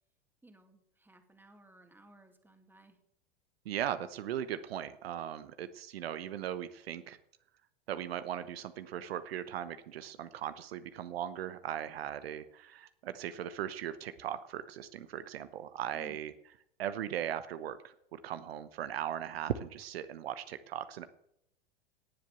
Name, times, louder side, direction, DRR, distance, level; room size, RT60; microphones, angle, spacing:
voice 1, 0.4-3.0 15.9-16.2, right 1 dB, 5° right, 6 dB, 2.1 m, -57 dB
voice 2, 3.6-7.2 7.9-16.3 16.8-21.1, right 10 dB, 75° right, 12 dB, 1.0 m, -38 dB
18.0 x 7.6 x 6.8 m, 0.76 s
hypercardioid pair, 100°, 30 cm